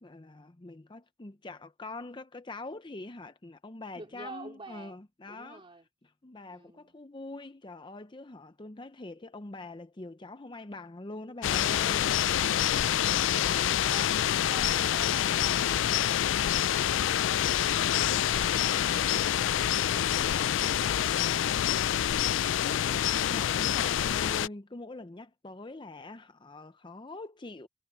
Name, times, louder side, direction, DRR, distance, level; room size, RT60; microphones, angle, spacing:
voice 1, 0.0-5.6 6.2-12.1 21.9-27.7, left 2 dB, 25° left, 0.6 m, -44 dB
voice 2, 3.9-5.0 5.2-5.9 6.5-6.9 12.4-14.2 14.5-17.5 17.9-21.4, right 2 dB, 30° right, 2.7 m, -48 dB
sound 1, 11.4-24.5, left 10 dB, 85° left, 0.4 m, -27 dB
head